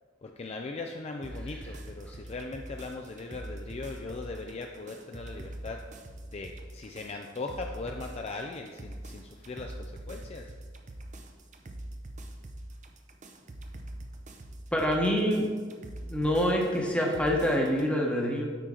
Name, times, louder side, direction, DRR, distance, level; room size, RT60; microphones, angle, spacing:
voice 1, 0.2-5.8 6.3-10.5, left 3 dB, 35° left, 3 dB, 0.4 m, -39 dB
sound 1, 1.2-17.9, right 1 dB, 40° right, 0.6 m, -44 dB
voice 2, 14.7-15.5 16.0-18.5, equal, 5° left, -1 dB, 1.0 m, -26 dB
8.9 x 4.4 x 3.8 m, 1.5 s
head